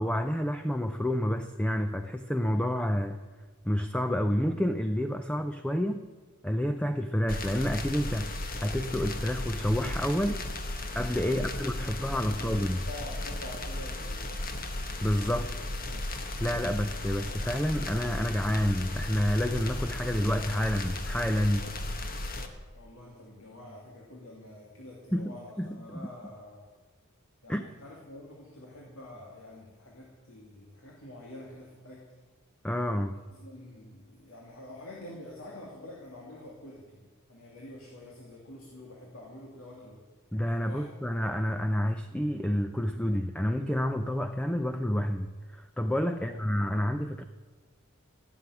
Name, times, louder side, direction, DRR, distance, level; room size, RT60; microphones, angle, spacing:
voice 1, 0.0-3.2 3.6-6.1 6.4-8.3 8.6-10.4 10.9-12.8 15.0-15.5 16.4-21.7 25.1-26.1 27.5-27.6 32.6-33.2 40.3-47.2, equal, 5° left, 8 dB, 0.5 m, -29 dB
sound 1, 7.3-22.5, left 1 dB, 45° left, 1.5 m, -35 dB
voice 2, 11.3-14.5 15.3-16.0 22.7-26.7 27.4-32.1 33.3-37.0 37.3-40.0 40.6-40.9 46.1-46.7, left 1 dB, 75° left, -2 dB, 2.7 m, -47 dB
16.0 x 7.6 x 9.9 m, 1.4 s
head